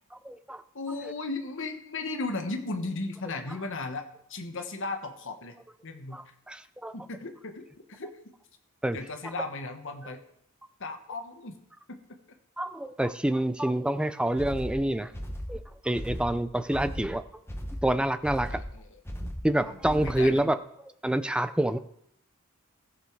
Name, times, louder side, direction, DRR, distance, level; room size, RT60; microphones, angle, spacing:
voice 1, 0.2-0.6 6.1-6.9 8.8-9.0 12.6-15.1 15.5-17.2 17.8-18.6 19.4-20.6 21.0-21.8, right 1 dB, 5° right, 12 dB, 0.4 m, -27 dB
voice 2, 0.7-5.5 5.8-6.2 6.9-8.1 8.9-10.2 10.8-11.6 11.9-12.0 18.5-19.0 19.6-20.5, left 3 dB, 60° left, 6 dB, 1.2 m, -36 dB
sound 1, 14.4-20.4, equal, 10° left, 1.0 m, -37 dB
15.0 x 6.9 x 4.6 m, 0.73 s
head